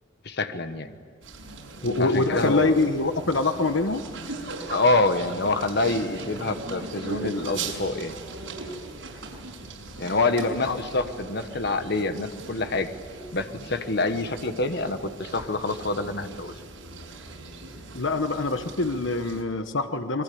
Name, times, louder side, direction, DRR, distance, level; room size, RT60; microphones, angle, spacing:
voice 1, 0.2-1.0 2.0-2.8 4.7-8.2 10.0-12.9 13.3-16.5, left 2 dB, 55° left, 8 dB, 1.3 m, -26 dB
sound 1, 1.2-19.4, right 3 dB, 90° right, 6.0 m, -39 dB
voice 2, 1.8-4.0 10.0-10.1 10.7-10.8 17.9-20.2, left 3 dB, 75° left, 8 dB, 1.2 m, -24 dB
25.5 x 22.5 x 8.7 m, 2.1 s
head